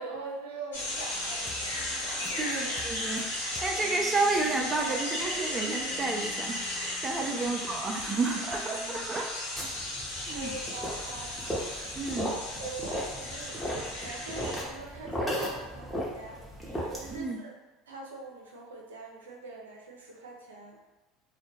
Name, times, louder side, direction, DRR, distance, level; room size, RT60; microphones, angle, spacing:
voice 1, 0.0-1.8 2.2-2.4 7.5-7.6 10.3-11.4 12.6-13.6 14.0-17.6 17.9-20.8, right 3 dB, 85° right, -1 dB, 0.4 m, -43 dB
sound 1, 0.7-14.6, left 1 dB, 90° left, 0.6 m, -35 dB
sound 2, 1.1-9.1, left 3 dB, 35° left, 0.4 m, -49 dB
voice 2, 2.4-9.5 10.3-10.6 11.9-12.3 17.1-17.4, right 3 dB, 30° right, 1 dB, 0.4 m, -31 dB
sound 3, 9.6-17.3, equal, 5° left, 0.8 m, -36 dB
2.1 x 2.1 x 3.0 m, 1.2 s
hypercardioid pair, 75°, 0 cm